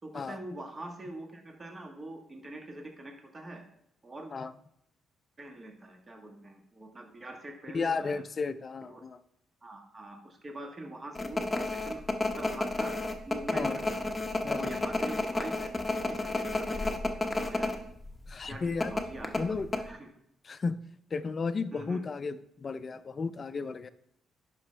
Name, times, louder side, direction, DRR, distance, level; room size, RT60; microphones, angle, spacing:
voice 1, 0.0-3.6 4.0-4.3 5.4-8.2 8.9-9.0 9.6-12.0 12.4-12.9 13.3-14.2 14.5-17.0 17.2-17.7 18.4-20.1 21.7-22.0, right 1 dB, 30° right, 2 dB, 1.5 m, -44 dB
voice 2, 7.7-9.2 13.5-13.8 14.4-14.7 18.3-18.9 19.4-19.7 20.4-20.8 21.1-23.9, left 4 dB, 40° left, 13 dB, 0.5 m, -33 dB
sound 1, 11.2-17.8 18.1-18.2 18.8-19.8, left 2 dB, 15° left, 0.9 m, -31 dB
10.5 x 5.4 x 3.3 m, 0.74 s
cardioid pair, 90°, 0 cm